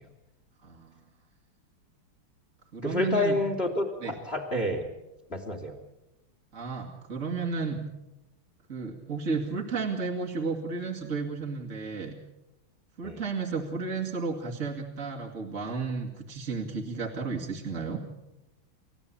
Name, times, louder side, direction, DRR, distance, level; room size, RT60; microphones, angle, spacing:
voice 1, 0.6-1.0 2.7-3.5 4.0-4.2 6.5-7.8 8.7-12.2 13.0-18.0, right 4 dB, 35° right, -1 dB, 2.6 m, -33 dB
voice 2, 2.8-4.9 5.3-5.7 13.0-13.2, left 2 dB, 25° left, 5 dB, 3.0 m, -28 dB
30.0 x 15.5 x 8.7 m, 0.98 s
omnidirectional pair, 2.4 m